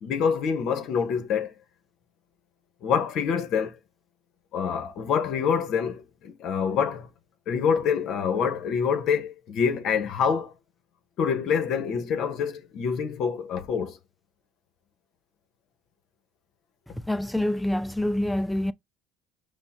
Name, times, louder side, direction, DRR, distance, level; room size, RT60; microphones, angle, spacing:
voice 1, 0.0-1.5 2.8-3.8 4.5-7.1 7.5-10.5 11.2-14.0 16.9-17.0, left 6 dB, 60° left, 1.1 m, -26 dB
voice 2, 17.1-18.7, left 1 dB, 5° left, 0.5 m, -26 dB
5.4 x 2.2 x 4.2 m
supercardioid pair, 90°, 0 cm